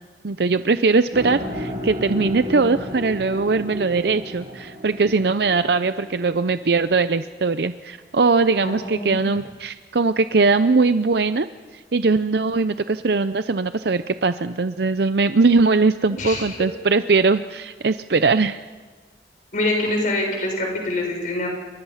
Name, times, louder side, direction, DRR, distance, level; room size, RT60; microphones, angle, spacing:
voice 1, 0.2-11.5 11.7-18.6, right 4 dB, 65° right, 11 dB, 0.6 m, -20 dB
sound 1, 1.1-7.3, left 1 dB, 30° right, 6.7 m, -33 dB
voice 2, 8.6-9.3 16.2-16.6 19.5-21.5, left 1 dB, 45° left, 1 dB, 7.0 m, -25 dB
28.5 x 23.5 x 5.7 m, 1.4 s
head